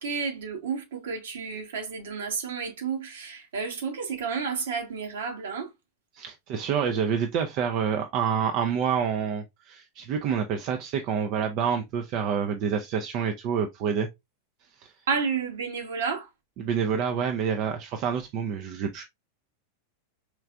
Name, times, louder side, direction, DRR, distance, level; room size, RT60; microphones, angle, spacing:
voice 1, 0.0-5.7 15.1-16.3, right 5 dB, 60° right, 1.3 m, -31 dB
voice 2, 6.1-14.1 14.8-14.9 16.6-19.0, right 7 dB, 40° right, 0.6 m, -27 dB
4.5 x 3.3 x 2.4 m
figure-of-eight pair, 90°, 0 cm